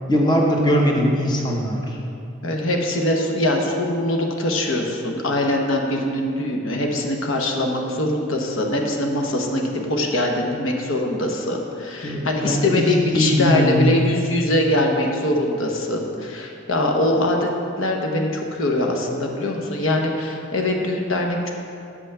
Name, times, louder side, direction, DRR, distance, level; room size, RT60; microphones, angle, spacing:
voice 1, 0.1-2.0 12.0-12.8 13.1-14.0, equal, 20° left, -1 dB, 0.8 m, -20 dB
voice 2, 2.4-17.5 17.8-21.5, left 1 dB, 85° left, 1 dB, 1.0 m, -22 dB
6.9 x 5.8 x 6.7 m, 2.7 s
head